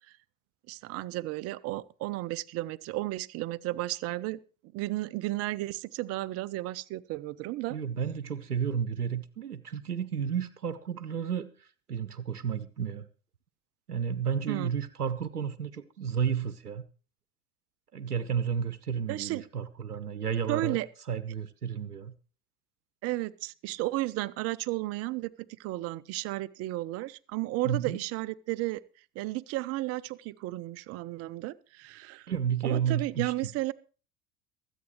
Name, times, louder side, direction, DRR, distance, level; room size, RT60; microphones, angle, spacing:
voice 1, 0.7-4.4 4.7-7.8 14.5-14.7 19.1-19.4 20.5-20.9 23.0-25.3 25.6-28.8 29.2-32.3 32.6-33.7, right 18 dB, 35° right, 0.5 m, -33 dB
voice 2, 7.7-13.1 13.9-16.8 17.9-20.8 21.1-22.1 27.6-28.0 32.3-33.3, right 7 dB, 85° right, 0.7 m, -32 dB
23.5 x 8.2 x 3.1 m
figure-of-eight pair, 70°, 45 cm